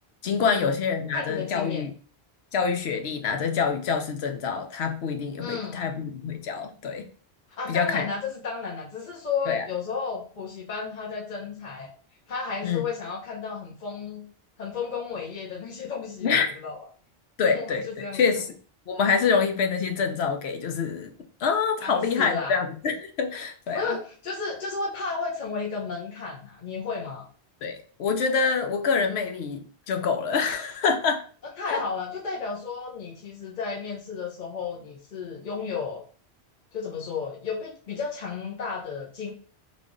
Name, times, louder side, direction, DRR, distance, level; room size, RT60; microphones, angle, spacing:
voice 1, 0.2-1.9 2.5-7.1 7.7-8.1 9.5-9.6 12.6-12.8 16.2-16.5 17.4-18.5 18.9-21.1 21.4-24.0 27.6-31.2 31.7-31.8, left 5 dB, 80° left, 5 dB, 0.9 m, -26 dB
voice 2, 1.1-1.9 5.4-5.8 7.5-11.9 12.3-14.2 14.6-16.8 17.5-18.2 21.8-22.6 23.7-27.3 31.6-36.0 36.7-39.3, left 5 dB, 50° left, -3 dB, 0.8 m, -33 dB
3.4 x 2.4 x 3.6 m, 0.41 s
omnidirectional pair, 1.1 m